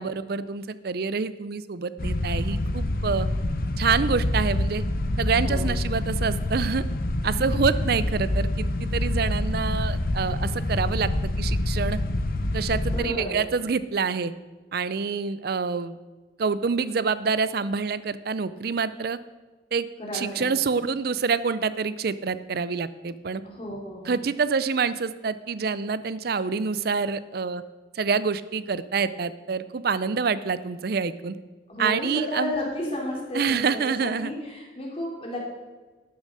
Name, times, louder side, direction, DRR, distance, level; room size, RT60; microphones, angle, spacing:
voice 1, 0.0-3.3 3.8-4.8 5.2-6.8 7.2-12.0 12.5-14.3 14.7-15.9 16.4-19.2 19.7-19.9 20.1-23.4 24.0-27.6 27.9-31.4 31.8-32.5 33.3-34.3, right 5 dB, 55° right, 15 dB, 0.5 m, -27 dB
sound 1, 2.0-13.1, left 1 dB, 50° left, 0.7 m, -26 dB
voice 2, 12.9-13.4 20.0-20.4 23.4-24.2 31.7-33.7 34.0-35.5, left 1 dB, 30° left, -2 dB, 3.1 m, -32 dB
12.0 x 7.0 x 6.4 m, 1.3 s
head